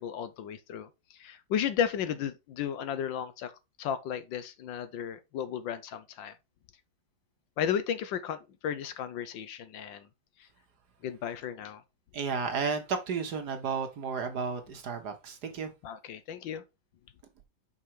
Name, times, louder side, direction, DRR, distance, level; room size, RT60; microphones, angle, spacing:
voice 1, 0.0-3.5 3.8-6.3 7.6-10.1 11.0-11.8 15.8-16.6, left 8 dB, 70° left, 1.4 m, -34 dB
voice 2, 12.1-15.7, right 5 dB, 60° right, 1.5 m, -33 dB
5.6 x 4.9 x 4.6 m
omnidirectional pair, 2.2 m